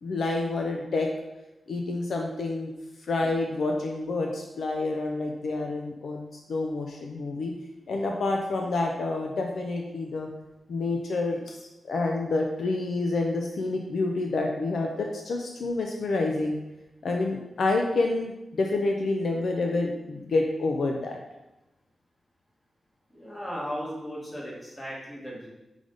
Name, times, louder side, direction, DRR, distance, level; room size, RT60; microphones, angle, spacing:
voice 1, 0.0-1.1 1.7-2.7 3.0-7.5 7.9-10.3 10.7-11.6 11.8-16.6 17.0-21.2, left 2 dB, 70° left, 1 dB, 0.6 m, -28 dB
voice 2, 23.1-25.5, equal, 15° left, -5 dB, 1.8 m, -36 dB
5.1 x 5.0 x 4.0 m, 0.97 s
wide cardioid pair, 135°, 0 cm